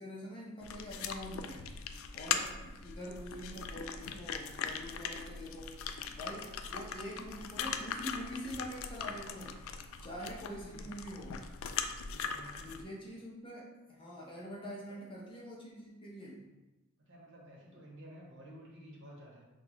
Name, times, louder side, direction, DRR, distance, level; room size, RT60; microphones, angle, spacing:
voice 1, 0.0-1.7 2.1-5.8 6.1-9.6 10.0-11.5 12.6-16.5, equal, 25° left, -4 dB, 0.7 m, -45 dB
sound 1, 0.6-12.8, left 6 dB, 65° left, 0.3 m, -40 dB
voice 2, 9.9-10.9 12.1-12.9 17.1-19.4, equal, 55° right, -3 dB, 1.0 m, -53 dB
5.9 x 2.3 x 3.0 m, 1.1 s
head